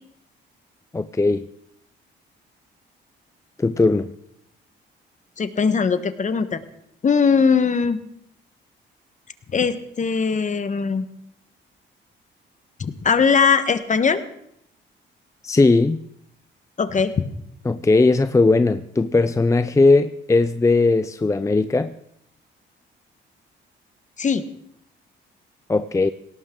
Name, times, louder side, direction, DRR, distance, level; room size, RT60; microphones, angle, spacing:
voice 1, 0.9-1.5 3.6-4.1 15.4-16.0 17.7-21.9 25.7-26.1, left 3 dB, 15° left, 12 dB, 0.5 m, -18 dB
voice 2, 5.4-6.6 7.0-8.0 9.5-11.0 12.8-14.2 16.8-17.1 24.2-24.4, left 5 dB, 40° left, 11 dB, 1.4 m, -20 dB
18.5 x 17.5 x 3.9 m, 0.75 s
cardioid pair, 90°, 20 cm